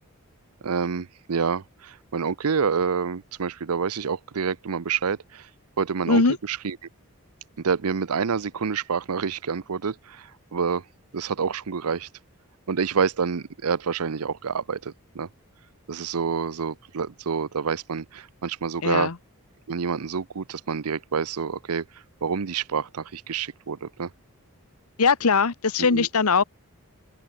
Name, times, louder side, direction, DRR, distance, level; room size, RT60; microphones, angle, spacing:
voice 1, 0.6-5.5 5.8-6.8 7.6-10.8 11.1-12.1 12.7-15.3 15.9-19.1 19.7-21.8 22.2-24.1 25.8-26.1, right 6 dB, 85° right, 0.7 m, -28 dB
voice 2, 18.8-19.2 25.0-26.4, left 4 dB, 85° left, 1.1 m, -20 dB
open air
head